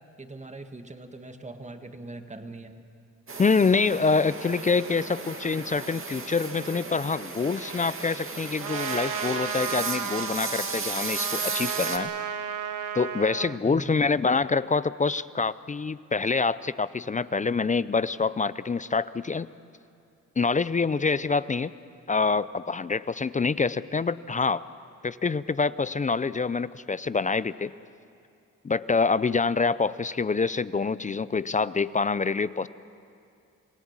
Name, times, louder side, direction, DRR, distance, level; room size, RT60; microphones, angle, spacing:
voice 1, 0.2-2.8 13.6-14.0, right 2 dB, 20° right, 7 dB, 1.7 m, -41 dB
sound 1, 3.3-12.0, right 4 dB, 40° right, 2.1 m, -35 dB
voice 2, 3.4-12.1 12.9-19.5 20.4-21.7 22.1-24.7 25.0-27.7 28.6-32.7, left 4 dB, 25° left, 17 dB, 0.5 m, -26 dB
Trumpet, 8.6-13.6, right 8 dB, 80° right, 1.0 m, -33 dB
27.0 x 17.0 x 7.3 m, 2.4 s
cardioid pair, 70°, 31 cm